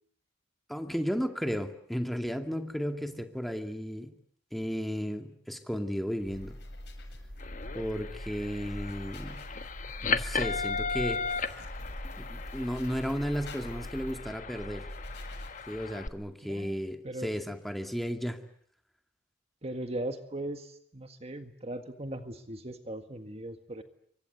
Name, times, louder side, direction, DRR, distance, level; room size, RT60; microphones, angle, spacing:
voice 1, 0.7-4.1 4.5-6.5 7.7-9.4 10.0-11.2 12.2-14.9 15.7-18.4, equal, ahead, 5 dB, 2.3 m, -34 dB
sound 1, 6.2-16.1, equal, 65° left, 7.7 m, -42 dB
sound 2, 7.4-16.1, left 4 dB, 45° left, 1.4 m, -36 dB
voice 2, 16.4-16.8 17.0-17.3 19.6-23.8, right 1 dB, 35° right, 8 dB, 1.8 m, -38 dB
28.0 x 24.5 x 8.0 m, 0.66 s
head